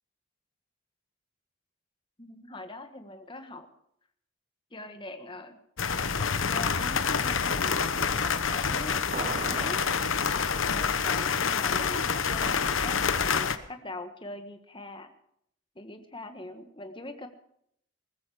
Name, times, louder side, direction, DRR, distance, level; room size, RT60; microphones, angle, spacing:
voice 1, 2.2-3.7 4.7-5.6 6.2-9.8 10.7-15.1 15.7-17.3, left 2 dB, 25° left, 7 dB, 1.5 m, -42 dB
sound 1, 5.8-13.6, left 6 dB, 80° left, 1.0 m, -27 dB
sound 2, 9.1-10.8, right 4 dB, 40° right, 0.7 m, -39 dB
19.5 x 14.0 x 5.0 m, 0.71 s
head